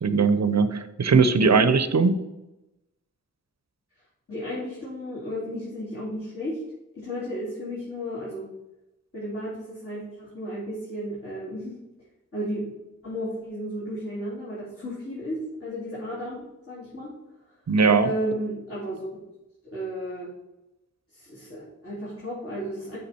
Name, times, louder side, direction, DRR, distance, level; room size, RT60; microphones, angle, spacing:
voice 1, 0.0-2.1 17.7-18.1, right 5 dB, 60° right, 12 dB, 0.7 m, -20 dB
voice 2, 4.3-6.6 6.9-8.5 9.1-11.8 12.3-12.7 13.0-17.1 17.8-19.2 19.7-20.3 21.1-23.0, equal, 45° left, -10 dB, 3.3 m, -33 dB
8.3 x 5.8 x 4.4 m, 0.94 s
wide cardioid pair, 85°, 31 cm